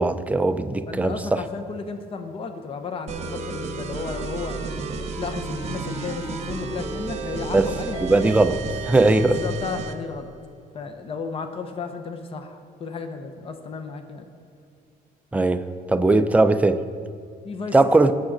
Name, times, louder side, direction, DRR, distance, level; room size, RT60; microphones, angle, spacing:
voice 1, 0.0-1.4 7.5-7.7 8.0-9.4 15.3-16.8 17.7-18.1, right 2 dB, 10° right, 9 dB, 0.4 m, -19 dB
voice 2, 0.9-8.4 9.2-10.3 10.7-14.3 17.4-17.7 18.0-18.1, left 5 dB, 35° left, 7 dB, 0.8 m, -34 dB
sound 1, 3.1-10.0, right 4 dB, 40° right, 0.9 m, -32 dB
17.5 x 7.2 x 3.8 m, 2.3 s
cardioid pair, 150°, 17 cm